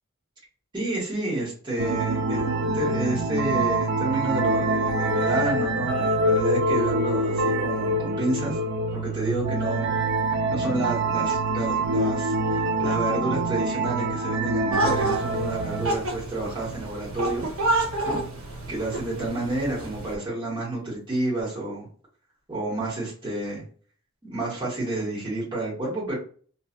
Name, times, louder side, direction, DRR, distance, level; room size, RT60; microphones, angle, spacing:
voice 1, 0.7-8.6 8.9-9.9 10.5-17.5 18.0-18.2 18.7-21.9 22.5-23.6 24.2-26.2, right 2 dB, 20° right, -7 dB, 1.2 m, -29 dB
sound 1, 1.8-15.9, right 2 dB, 55° right, 0.4 m, -25 dB
sound 2, 14.7-20.1, right 2 dB, 75° right, 0.8 m, -29 dB
2.7 x 2.4 x 2.5 m, 0.43 s
head